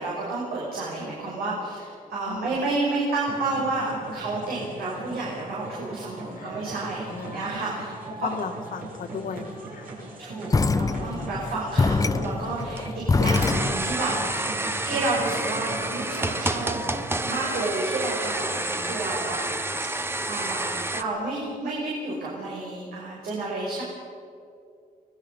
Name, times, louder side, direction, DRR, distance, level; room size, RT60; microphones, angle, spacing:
voice 1, 0.0-8.3 10.2-16.8 17.3-19.4 20.3-23.8, right 2 dB, 80° right, -5 dB, 6.0 m, -30 dB
voice 2, 2.3-2.6 6.4-7.5 8.2-9.9, left 5 dB, 65° left, 5 dB, 2.2 m, -36 dB
sound 1, 3.3-17.4, right 2 dB, 65° right, 6.8 m, -39 dB
sound 2, 10.5-14.0, left 4 dB, 20° left, 0.7 m, -24 dB
sound 3, 12.2-21.0, right 2 dB, 15° right, 1.1 m, -29 dB
24.5 x 19.5 x 5.6 m, 2.5 s
cardioid pair, 105°, 15 cm